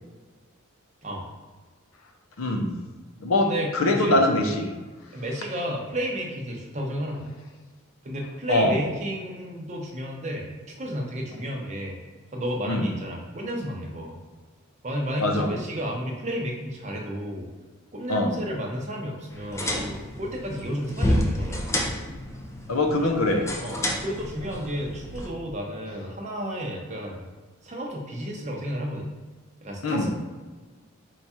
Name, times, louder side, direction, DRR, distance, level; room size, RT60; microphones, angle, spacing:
voice 1, 2.4-2.7 3.2-4.7 8.5-8.8 12.7-12.8 15.2-15.5 18.1-18.3 22.7-23.4 29.8-30.1, left 2 dB, 70° left, 3 dB, 0.6 m, -23 dB
voice 2, 3.4-4.2 5.1-7.4 8.0-10.5 10.8-12.0 12.3-14.2 14.8-17.5 17.9-21.8 23.0-23.1 23.6-27.2 27.6-29.1 29.6-30.1, equal, 30° right, 0 dB, 0.6 m, -32 dB
sound 1, 19.3-25.3, left 1 dB, 15° left, 0.3 m, -30 dB
4.6 x 2.3 x 4.1 m, 1.3 s
head